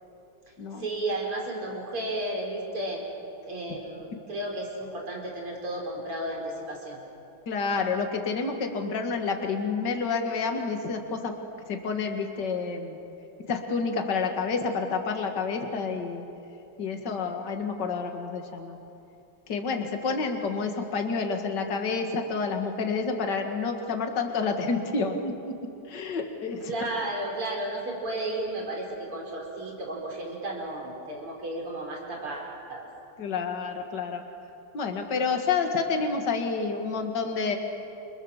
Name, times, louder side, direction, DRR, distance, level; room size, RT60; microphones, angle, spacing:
voice 1, 0.8-3.0 3.5-7.0 26.6-32.9, right 1 dB, 90° right, -1 dB, 5.9 m, -33 dB
voice 2, 7.5-11.3 11.7-13.0 13.5-16.3 16.8-18.8 19.5-25.5 25.8-26.7 33.2-34.2 34.7-37.6, left 4 dB, 55° left, 4 dB, 2.6 m, -29 dB
29.0 x 27.5 x 7.4 m, 2.8 s
omnidirectional pair, 2.3 m